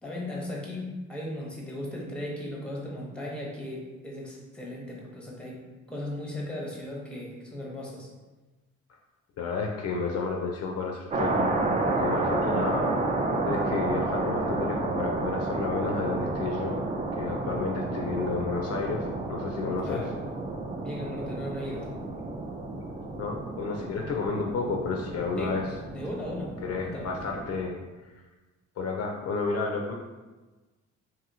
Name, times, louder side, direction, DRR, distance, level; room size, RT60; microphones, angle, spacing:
voice 1, 0.0-5.6 5.9-8.1 19.8-20.1 20.8-21.9 25.4-25.6 25.9-27.1, left 1 dB, 5° left, -3 dB, 0.7 m, -37 dB
voice 2, 9.4-11.5 11.8-12.9 13.4-16.8 17.1-20.0 23.2-25.6 26.6-27.8 28.8-29.9, left 4 dB, 55° left, 1 dB, 0.4 m, -31 dB
sound 1, 11.1-27.6, right 2 dB, 25° right, 0.4 m, -31 dB
2.8 x 2.7 x 2.6 m, 1.2 s
cardioid pair, 90°, 30 cm